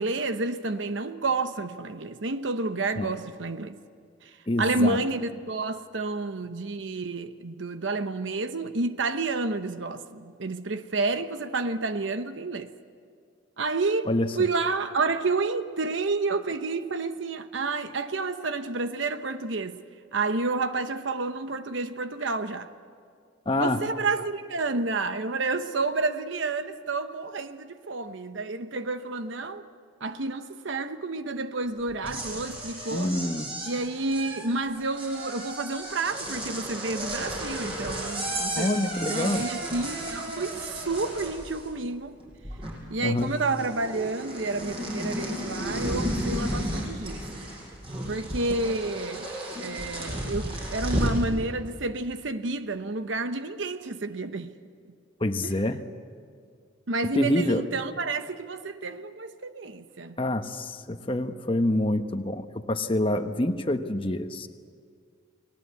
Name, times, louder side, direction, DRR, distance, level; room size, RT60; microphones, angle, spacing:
voice 1, 0.0-3.8 4.2-4.3 4.6-12.7 13.6-19.8 20.1-22.7 23.6-29.6 30.0-33.1 33.7-42.2 42.9-47.2 48.1-49.3 49.6-54.5 55.4-55.5 56.9-60.2, right 3 dB, 70° right, 0.9 m, -30 dB
voice 2, 4.5-5.0 14.1-14.3 23.5-23.9 32.9-33.5 38.6-39.5 43.0-43.4 55.2-55.9 57.1-57.6 60.2-64.5, left 1 dB, 25° left, 1.0 m, -27 dB
sound 1, 31.9-41.9 42.2-42.9 43.2-51.2, right 1 dB, 30° right, 6.8 m, -33 dB
30.0 x 19.5 x 8.3 m
head